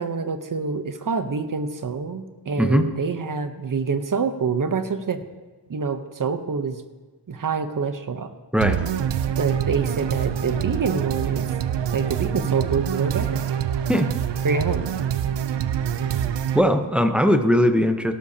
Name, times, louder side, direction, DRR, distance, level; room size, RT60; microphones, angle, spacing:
voice 1, 0.0-5.2 5.7-6.8 7.3-8.3 9.4-11.5 11.9-13.4 14.4-14.9, right 5 dB, 50° right, 9 dB, 0.9 m, -26 dB
sound 1, 8.6-16.6, right 9 dB, 85° right, 0.6 m, -25 dB
voice 2, 16.5-18.1, equal, 5° right, 6 dB, 0.8 m, -19 dB
17.0 x 12.0 x 2.8 m, 1.3 s
wide cardioid pair, 110°, 41 cm